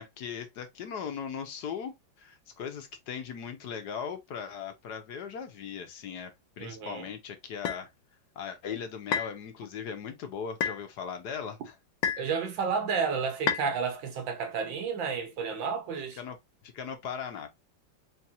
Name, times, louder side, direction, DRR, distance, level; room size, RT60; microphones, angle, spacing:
voice 1, 0.0-7.9 8.4-11.7 16.2-16.4 16.6-17.5, left 7 dB, 65° left, 1.3 m, -38 dB
voice 2, 6.6-7.1 12.2-16.2, right 5 dB, 85° right, 1.8 m, -31 dB
sound 1, 7.7-7.8 9.1-9.4 10.6-10.8 12.0-12.3 13.5-13.7, left 7 dB, 80° left, 1.5 m, -29 dB
4.7 x 3.1 x 2.8 m
omnidirectional pair, 2.0 m